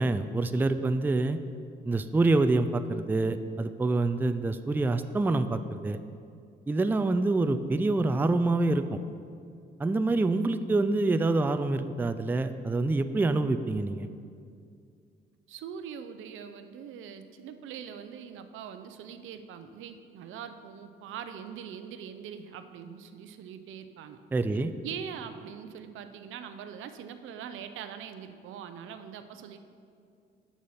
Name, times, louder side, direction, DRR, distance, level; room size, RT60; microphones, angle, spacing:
voice 1, 0.0-1.4 1.8-6.0 6.7-9.0 9.8-14.1 24.3-24.7, right 2 dB, 10° right, 10 dB, 0.3 m, -26 dB
voice 2, 15.5-24.2 24.5-29.6, right 8 dB, 85° right, 9 dB, 0.6 m, -42 dB
7.0 x 6.4 x 5.7 m, 2.4 s
cardioid pair, 90°, 20 cm